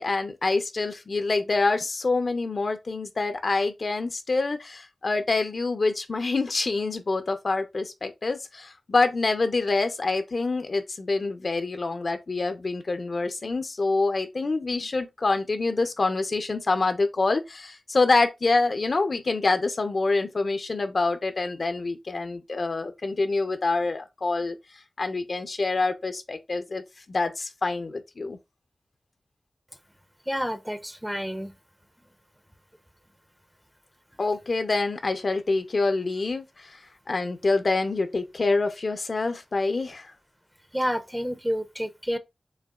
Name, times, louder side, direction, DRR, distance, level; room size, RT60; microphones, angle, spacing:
voice 1, 0.0-24.6 25.0-26.8 27.1-28.4 34.2-36.8 37.1-40.1, left 3 dB, 60° left, 0.7 m, -26 dB
voice 2, 30.3-31.5 40.7-42.2, equal, 5° right, 0.7 m, -29 dB
6.5 x 3.4 x 2.4 m
cardioid pair, 45°, 0 cm